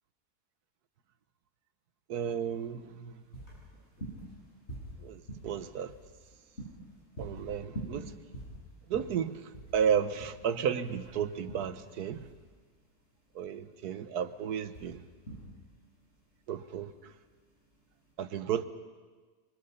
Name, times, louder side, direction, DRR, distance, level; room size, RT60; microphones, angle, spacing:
voice 1, 2.1-3.1 5.0-5.2 5.4-5.9 7.2-8.1 8.9-9.4 9.7-12.2 13.4-15.0 16.5-16.9 18.2-18.7, right 8 dB, 85° right, 12 dB, 1.5 m, -32 dB
sound 1, 2.5-18.1, right 1 dB, 45° left, 8.1 m, -47 dB
26.5 x 25.5 x 5.7 m, 1.4 s
omnidirectional pair, 1.6 m